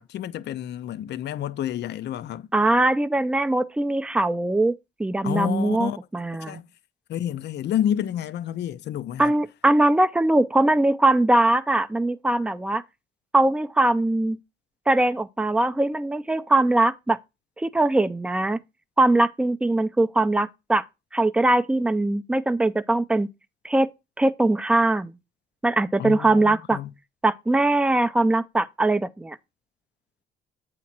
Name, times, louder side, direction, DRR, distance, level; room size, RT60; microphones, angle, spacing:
voice 1, 0.0-2.5 5.2-6.0 6.5-6.7 7.1-9.3 26.0-26.9, left 10 dB, 60° left, 0.5 m, -29 dB
voice 2, 2.5-4.7 5.0-6.6 9.2-12.8 13.3-14.4 14.9-17.2 17.6-18.6 19.0-20.8 21.1-23.3 23.6-23.9 24.2-25.1 25.6-26.8 27.2-29.4, right 2 dB, 5° right, 0.4 m, -21 dB
8.3 x 2.9 x 5.8 m
cardioid pair, 90°, 20 cm